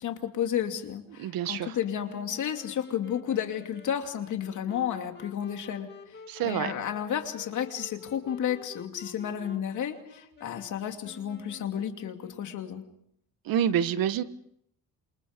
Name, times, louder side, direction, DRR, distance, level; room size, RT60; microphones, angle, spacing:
voice 1, 0.0-5.9 6.4-12.8, left 9 dB, 60° left, 2.7 m, -32 dB
voice 2, 1.2-1.8 6.3-6.7 13.4-14.2, right 9 dB, 90° right, 1.4 m, -27 dB
Wind instrument woodwind instrument, 1.8-12.9, left 6 dB, 30° left, 2.5 m, -49 dB
28.0 x 27.5 x 5.2 m
cardioid pair, 165°, 34 cm